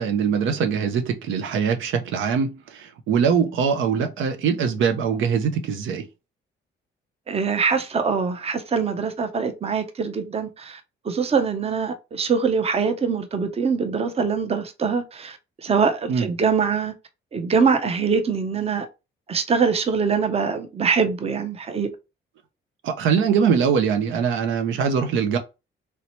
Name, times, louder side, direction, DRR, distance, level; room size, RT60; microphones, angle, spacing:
voice 1, 0.0-6.0 16.1-16.3 22.8-25.4, right 6 dB, 80° right, 0.6 m, -22 dB
voice 2, 7.3-15.4 15.6-16.9 17.3-18.9 19.3-21.9, right 5 dB, 30° right, 0.6 m, -23 dB
3.1 x 2.8 x 3.0 m
cardioid pair, 90°, 20 cm